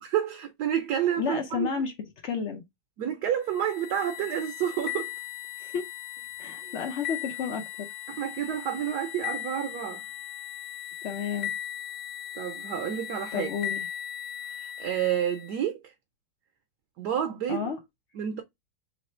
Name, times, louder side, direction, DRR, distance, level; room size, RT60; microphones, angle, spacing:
voice 1, 0.1-1.7 3.0-5.1 6.6-6.7 8.1-10.0 12.4-13.5 14.6-15.9 17.0-17.6 18.1-18.4, right 10 dB, 70° right, 1.1 m, -29 dB
voice 2, 1.2-1.9 2.2-2.6 5.6-5.8 6.4-7.7 11.0-11.5 13.3-13.9 17.5-17.8, left 6 dB, 65° left, 0.7 m, -31 dB
sound 1, 3.5-15.6, left 11 dB, 45° left, 1.2 m, -38 dB
3.2 x 3.1 x 4.2 m
omnidirectional pair, 2.1 m